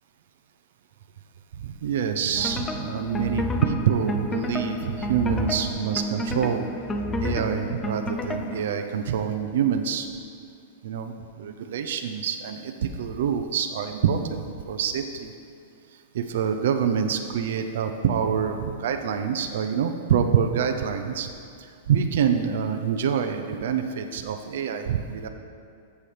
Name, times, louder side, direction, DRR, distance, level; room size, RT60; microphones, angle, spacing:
voice 1, 1.5-6.6 7.2-10.1 10.8-14.4 14.7-15.3 16.1-21.3 21.6-25.3, right 7 dB, 65° right, 5 dB, 0.5 m, -26 dB
sound 1, 2.4-8.7, left 1 dB, 10° left, 0.4 m, -30 dB
13.5 x 7.0 x 3.3 m, 2.4 s
supercardioid pair, 170°, 0 cm